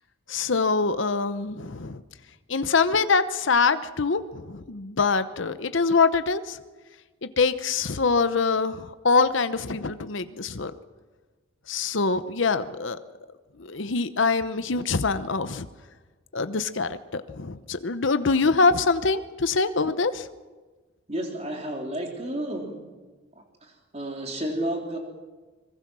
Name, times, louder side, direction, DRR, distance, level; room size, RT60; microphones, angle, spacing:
voice 1, 0.3-2.0 2.5-6.6 7.2-10.7 11.7-13.0 13.6-15.7 16.3-20.3, left 4 dB, 65° left, 11 dB, 0.9 m, -24 dB
voice 2, 21.1-22.8 23.6-25.0, right 1 dB, 30° right, 2 dB, 3.5 m, -31 dB
24.5 x 22.0 x 6.2 m, 1.3 s
head